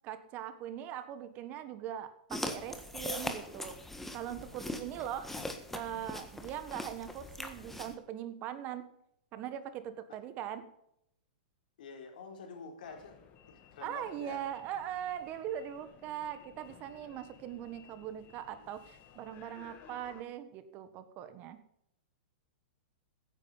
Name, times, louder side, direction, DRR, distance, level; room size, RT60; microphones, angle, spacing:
voice 1, 0.0-3.8 4.1-5.4 5.7-8.9 9.3-10.6 13.8-21.6, right 10 dB, 35° right, 11 dB, 1.4 m, -41 dB
sound 1, 2.3-7.9, left 1 dB, 5° left, 1.5 m, -41 dB
voice 2, 11.8-13.2 13.5-14.4, left 5 dB, 70° left, 3 dB, 4.0 m, -47 dB
sound 2, 12.8-20.2, left 8 dB, 30° left, 1.8 m, -57 dB
15.5 x 9.7 x 5.5 m, 0.75 s
hypercardioid pair, 140°, 5 cm